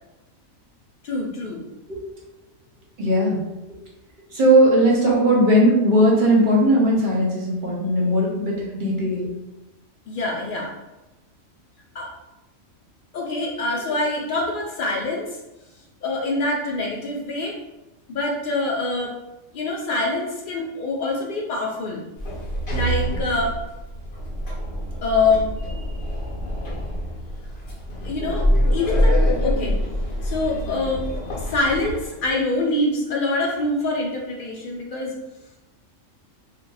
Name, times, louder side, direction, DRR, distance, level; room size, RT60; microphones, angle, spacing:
voice 1, 1.0-1.6 10.1-10.7 11.9-12.1 13.1-15.4 16.0-17.6 18.1-19.2 19.5-22.0 22.7-23.6 25.0-25.5 28.0-29.8 30.2-31.1 31.4-35.1, left 2 dB, 70° left, -1 dB, 0.4 m, -25 dB
voice 2, 3.0-3.4 4.3-9.3, right 1 dB, 45° right, -3 dB, 0.7 m, -18 dB
Sliding door, 22.2-32.3, equal, 55° left, 1.0 m, -25 dB
2.6 x 2.2 x 3.8 m, 0.99 s
omnidirectional pair, 1.4 m